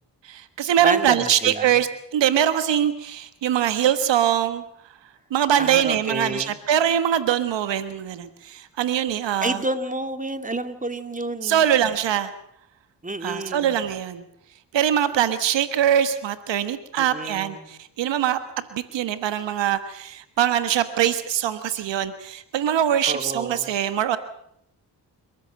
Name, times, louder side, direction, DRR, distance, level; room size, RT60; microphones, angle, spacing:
voice 1, 0.3-4.6 5.3-9.6 11.4-12.3 13.2-14.2 14.7-18.4 18.7-24.2, right 10 dB, 85° right, 11 dB, 1.4 m, -22 dB
voice 2, 0.8-1.8 5.5-6.6 9.4-11.6 13.0-13.7 17.0-17.7 23.1-23.7, right 2 dB, 20° right, 8 dB, 2.8 m, -29 dB
28.5 x 14.5 x 7.7 m, 0.73 s
supercardioid pair, 45°, 43 cm